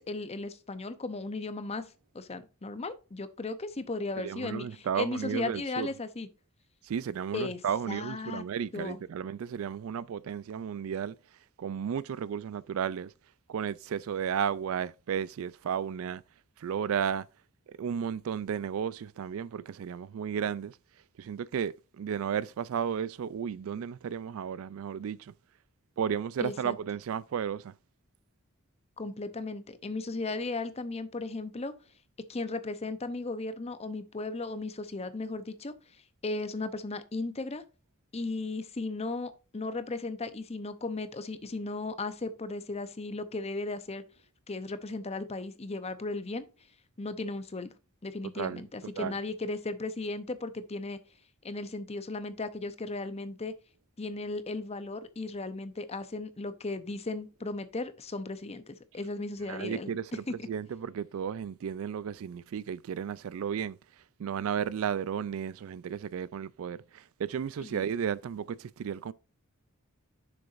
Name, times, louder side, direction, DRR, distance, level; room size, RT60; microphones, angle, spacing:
voice 1, 0.0-1.9 2.1-6.3 7.3-7.6 7.9-8.4 8.7-9.0 26.4-26.7 29.0-31.7 32.3-35.7 36.2-37.6 38.1-44.0 44.5-46.5 47.0-47.7 48.0-51.0 51.4-53.5 54.0-59.9 60.3-60.4 67.6-67.9, left 3 dB, 30° left, 0.7 m, -36 dB
voice 2, 4.2-5.9 6.8-11.1 11.6-13.1 13.5-16.2 16.6-17.2 17.7-20.7 21.2-25.3 26.0-27.7 48.4-49.1 59.5-63.8 64.2-69.1, right 8 dB, 65° right, 0.3 m, -33 dB
6.9 x 6.6 x 2.5 m
head